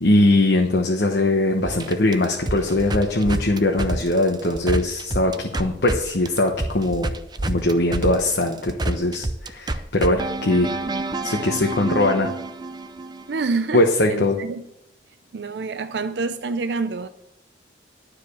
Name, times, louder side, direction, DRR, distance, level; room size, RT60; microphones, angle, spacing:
voice 1, 0.0-7.1 7.5-10.7 11.2-12.3 13.7-14.4, left 2 dB, 65° left, 1 dB, 1.1 m, -21 dB
sound 1, 1.6-6.0 6.2-13.5, right 2 dB, 25° right, 0.5 m, -28 dB
voice 2, 13.3-14.6 15.3-17.1, right 4 dB, 70° right, 10 dB, 0.5 m, -27 dB
12.0 x 5.0 x 8.4 m, 0.80 s
head